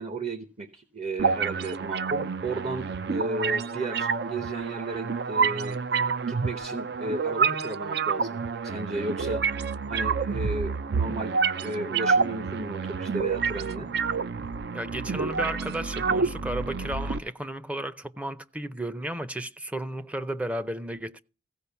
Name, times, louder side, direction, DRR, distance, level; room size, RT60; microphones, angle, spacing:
voice 1, 0.0-5.8 6.3-9.4 9.9-13.9, right 2 dB, 40° right, 1.0 m, -34 dB
sound 1, 1.2-17.2, right 5 dB, 65° right, 0.5 m, -28 dB
voice 2, 14.7-21.2, right 1 dB, 10° right, 0.5 m, -33 dB
15.5 x 5.2 x 7.0 m
head